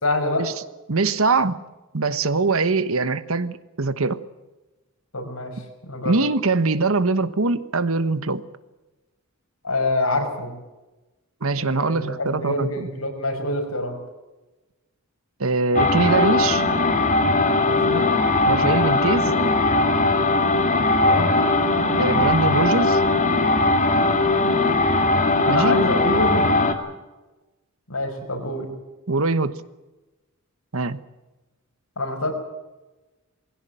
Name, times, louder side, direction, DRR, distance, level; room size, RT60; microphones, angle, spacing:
voice 1, 0.0-0.4 5.1-6.2 9.6-10.5 11.6-13.9 17.6-18.1 21.0-21.3 25.4-26.5 27.9-28.7 32.0-32.3, left 1 dB, 85° left, 4 dB, 5.6 m, -26 dB
voice 2, 0.9-1.6 1.9-4.2 6.0-8.4 11.4-12.9 15.4-16.6 18.5-19.3 22.0-23.0 25.5-25.8 29.1-29.6 30.7-31.0, right 3 dB, 70° right, 14 dB, 1.2 m, -22 dB
sound 1, 15.7-26.7, left 2 dB, 35° left, 2.2 m, -19 dB
20.5 x 17.0 x 9.1 m, 1.1 s
head